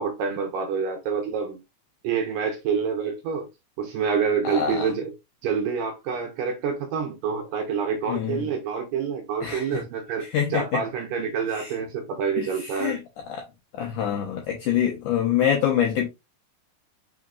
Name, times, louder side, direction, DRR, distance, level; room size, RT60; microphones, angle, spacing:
voice 1, 0.0-1.6 2.0-3.5 3.8-5.1 5.4-10.3 10.5-13.0, right 6 dB, 75° right, 2.2 m, -27 dB
voice 2, 4.4-4.9 8.1-8.5 9.4-9.8 10.2-10.8 11.5-11.8 12.4-13.0 13.3-13.4 13.7-16.1, left 9 dB, 80° left, 1.8 m, -26 dB
5.5 x 3.8 x 2.4 m
omnidirectional pair, 4.5 m